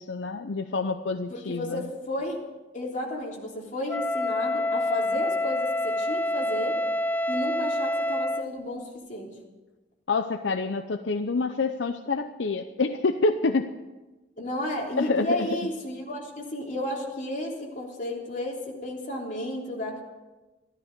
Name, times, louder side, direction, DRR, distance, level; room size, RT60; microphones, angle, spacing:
voice 1, 0.0-1.8 10.1-13.7 14.9-15.5, left 3 dB, 80° left, 7 dB, 0.7 m, -27 dB
voice 2, 1.3-2.4 2.7-6.8 7.3-9.3 14.4-20.0, left 1 dB, 45° left, -2 dB, 3.5 m, -33 dB
Wind instrument woodwind instrument, 3.9-8.5, left 1 dB, 10° left, 0.4 m, -27 dB
14.0 x 13.0 x 6.7 m, 1.1 s
head